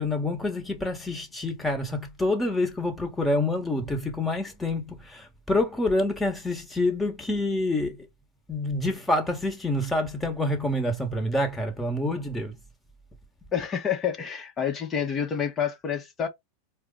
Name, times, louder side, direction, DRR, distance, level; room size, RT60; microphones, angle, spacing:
voice 1, 0.0-7.9 8.5-12.5, left 2 dB, 10° left, 1.5 m, -27 dB
voice 2, 13.5-16.3, left 8 dB, 30° left, 1.1 m, -28 dB
4.4 x 2.3 x 3.8 m
hypercardioid pair, 95°, 0 cm